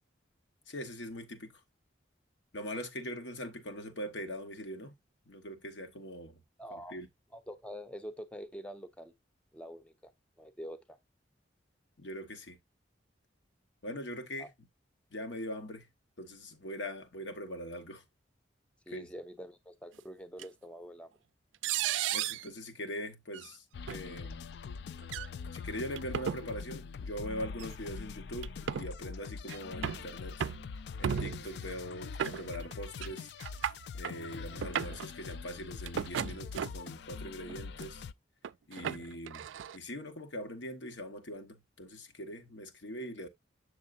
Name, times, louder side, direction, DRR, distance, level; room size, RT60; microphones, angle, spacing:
voice 1, 0.7-1.6 2.5-5.0 5.3-6.4 6.7-7.1 12.0-12.6 13.8-14.5 15.1-15.9 16.2-18.0 18.9-19.1 22.1-24.4 25.5-30.4 31.0-33.3 33.9-38.0 38.7-39.5 39.7-43.3, equal, 80° left, 1.1 m, -42 dB
voice 2, 6.6-7.0 7.3-9.1 9.5-10.1 10.4-11.0 14.4-14.5 18.9-21.1, equal, 5° left, 0.5 m, -45 dB
sound 1, 20.4-20.5 21.6-22.5 23.3-23.5 23.9-24.0 25.0-25.3 26.0-26.4 27.6-27.7 28.4-28.9 29.5-30.1 30.4-30.7 31.0-31.5 32.2-32.7 33.0-33.1 33.4-34.2 34.6-35.1 35.9-36.9 37.5-37.8 38.4-39.8, right 9 dB, 90° right, 0.4 m, -35 dB
sound 2, 23.7-38.1, left 5 dB, 65° left, 0.3 m, -43 dB
7.7 x 6.5 x 2.5 m
head